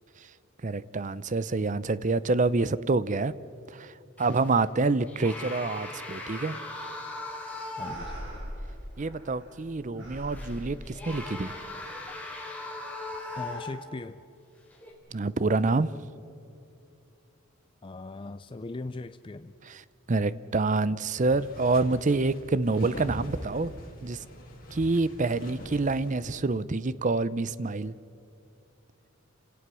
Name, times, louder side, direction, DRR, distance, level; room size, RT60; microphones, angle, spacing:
voice 1, 0.6-3.3 3.7-6.6 9.0-11.5 15.1-15.9 19.6-19.8 20.1-23.7 24.0-24.2 24.7-27.9, right 3 dB, 35° right, 17 dB, 0.5 m, -27 dB
sound 1, 4.2-4.6 5.1-8.3 8.7-8.8 10.3-14.0 14.7-14.9, left 2 dB, 5° left, 3.3 m, -39 dB
sound 2, 6.7-7.4 7.8-9.6 9.9-11.5, equal, 65° right, 6.8 m, -42 dB
voice 2, 7.8-8.1 9.9-10.1 11.9-12.0 13.3-14.2 17.8-19.5, left 2 dB, 25° left, 11 dB, 0.4 m, -39 dB
sound 3, 21.1-26.6, equal, 45° left, 6.3 m, -43 dB
29.0 x 17.5 x 6.2 m, 2.7 s
head